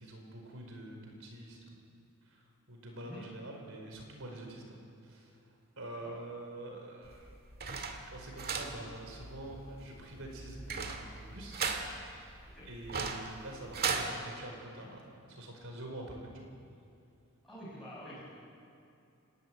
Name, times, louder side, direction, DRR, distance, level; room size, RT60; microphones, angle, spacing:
voice 1, 0.0-1.6 2.3-5.3 5.8-7.3 8.1-11.6 12.6-15.0 15.3-16.5, right 1 dB, 70° right, 2 dB, 5.0 m, -46 dB
sound 1, 7.0-14.1, right 5 dB, 45° right, 1.9 m, -38 dB
voice 2, 17.4-18.2, equal, ahead, -11 dB, 6.7 m, -47 dB
29.5 x 13.0 x 9.2 m, 2.6 s
head